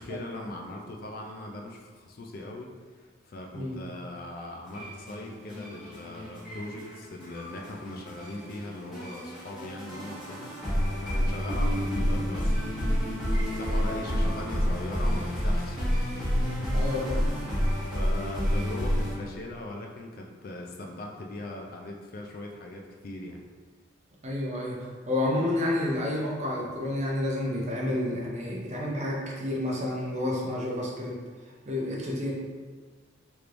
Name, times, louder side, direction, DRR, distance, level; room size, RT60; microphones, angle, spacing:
voice 1, 0.0-17.1 17.9-23.4, left 1 dB, 45° left, 1 dB, 0.3 m, -40 dB
sound 1, 4.7-19.2, equal, ahead, 1.2 m, -29 dB
voice 2, 16.7-17.2 24.2-31.2 31.7-32.3, left 1 dB, 35° right, -3 dB, 0.5 m, -30 dB
3.4 x 3.0 x 2.5 m, 1.5 s
head